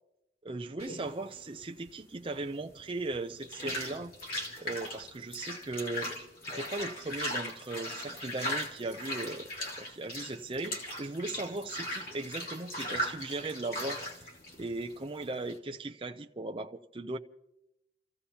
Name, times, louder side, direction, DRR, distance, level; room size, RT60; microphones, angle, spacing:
voice 1, 0.4-4.1 4.6-6.1 6.5-9.5 9.8-14.3 14.6-17.2, right 2 dB, 30° right, 0.6 m, -38 dB
sound 1, 0.8-15.6, equal, 55° left, 2.8 m, -39 dB
29.5 x 15.5 x 2.9 m
head